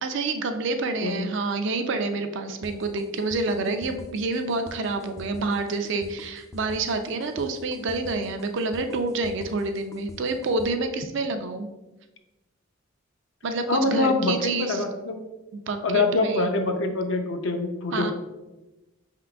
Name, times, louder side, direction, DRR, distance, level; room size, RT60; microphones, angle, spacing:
voice 1, 0.0-11.7 13.4-14.8 15.7-16.5 17.9-18.1, right 3 dB, 55° right, 7 dB, 0.4 m, -28 dB
sound 1, 2.6-10.7, left 2 dB, 15° left, 0.3 m, -44 dB
voice 2, 13.7-15.2 15.8-18.1, left 2 dB, 65° left, 5 dB, 0.5 m, -24 dB
5.5 x 3.7 x 2.3 m, 1.1 s
head